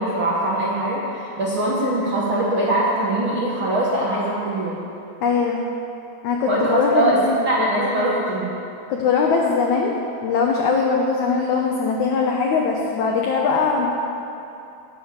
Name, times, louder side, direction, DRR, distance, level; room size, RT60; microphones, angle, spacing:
voice 1, 0.0-4.8 6.5-7.2 7.4-8.5, right 1 dB, 65° right, -6 dB, 1.2 m, -22 dB
voice 2, 5.2-5.6 6.2-7.8 8.9-9.9 10.2-13.9, left 5 dB, 90° left, 0 dB, 1.6 m, -21 dB
18.0 x 7.8 x 6.7 m, 2.8 s
omnidirectional pair, 4.9 m